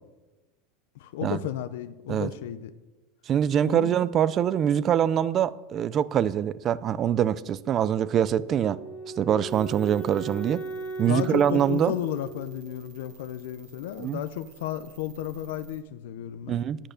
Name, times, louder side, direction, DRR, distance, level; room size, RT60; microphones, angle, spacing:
voice 1, 0.9-2.7 3.7-3.9 11.0-16.6, left 12 dB, 80° left, 0.6 m, -33 dB
voice 2, 3.3-8.8 9.2-10.6 11.0-11.9 14.0-14.2 16.5-16.8, right 9 dB, 30° right, 0.4 m, -24 dB
Wind instrument woodwind instrument, 8.3-13.4, right 4 dB, 40° left, 1.7 m, -38 dB
sound 1, 9.5-15.8, right 7 dB, 60° right, 1.6 m, -54 dB
10.0 x 8.9 x 6.4 m
supercardioid pair, 155°, 0 cm